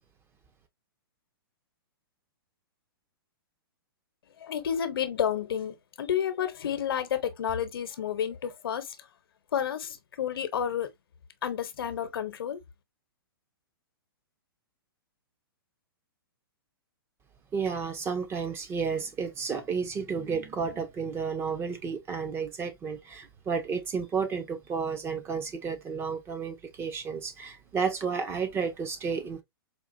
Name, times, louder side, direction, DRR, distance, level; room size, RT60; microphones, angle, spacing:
voice 1, 4.4-9.0 9.5-10.9 11.4-12.6, left 9 dB, 75° left, 0.8 m, -30 dB
voice 2, 17.5-29.4, right 5 dB, 20° right, 0.8 m, -32 dB
4.4 x 2.4 x 2.5 m
hypercardioid pair, 130°, 12 cm